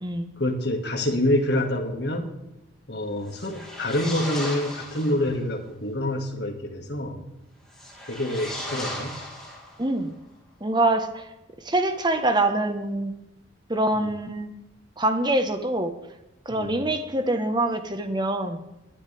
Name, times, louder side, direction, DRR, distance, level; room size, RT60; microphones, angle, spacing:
voice 1, 0.4-2.3 2.9-7.2 8.1-9.2 13.9-14.1 16.5-16.8, left 1 dB, 60° left, 3 dB, 2.2 m, -27 dB
sound 1, 3.2-5.3 7.7-10.0, left 1 dB, 5° left, 3.9 m, -36 dB
voice 2, 9.8-10.1 10.6-11.3 11.6-13.1 13.7-14.5 15.0-15.9 16.4-18.6, right 2 dB, 25° right, 7 dB, 1.4 m, -24 dB
22.0 x 9.2 x 3.5 m, 0.93 s
head